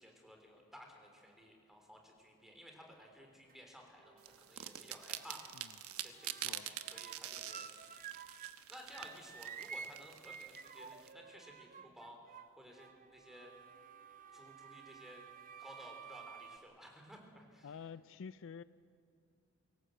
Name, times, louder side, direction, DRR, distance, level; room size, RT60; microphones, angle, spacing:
voice 1, 0.0-5.4 6.0-7.7 8.7-13.5 14.3-15.3 15.6-17.7, equal, ahead, 2 dB, 3.6 m, -56 dB
sound 1, 3.0-3.6 3.9-5.8 6.1-8.6 8.9-16.6, right 6 dB, 40° right, 0.8 m, -52 dB
sound 2, 4.2-11.1, right 11 dB, 80° right, 1.1 m, -46 dB
voice 2, 17.6-18.6, left 6 dB, 60° left, 16 dB, 0.4 m, -48 dB
24.0 x 17.5 x 7.9 m, 2.6 s
head